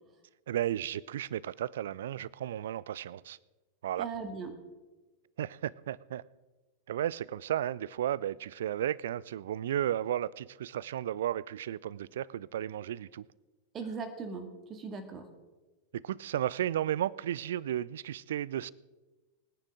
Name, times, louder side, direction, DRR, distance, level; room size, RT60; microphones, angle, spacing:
voice 1, 0.5-3.4 3.8-4.1 5.4-6.2 6.9-13.3 15.9-18.7, right 11 dB, 60° right, 23 dB, 0.4 m, -34 dB
voice 2, 4.0-4.5 13.7-15.3, right 4 dB, 25° right, 7 dB, 2.0 m, -39 dB
24.5 x 10.0 x 3.7 m, 1.2 s
figure-of-eight pair, 90°, 0 cm